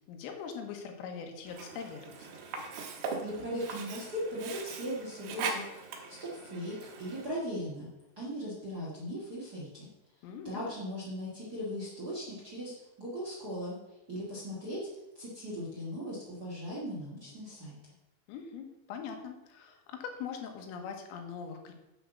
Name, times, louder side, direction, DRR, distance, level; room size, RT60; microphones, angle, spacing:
voice 1, 0.0-2.3 10.2-10.7 18.3-21.7, left 6 dB, 85° left, 4 dB, 4.1 m, -42 dB
Sink (filling or washing), 1.5-7.4, right 4 dB, 65° right, 2.8 m, -40 dB
voice 2, 3.2-7.9 8.2-9.9 10.4-13.8 14.1-14.8 15.1-17.8, equal, 30° right, -5 dB, 1.9 m, -38 dB
8.9 x 7.8 x 6.7 m, 0.98 s
omnidirectional pair, 5.8 m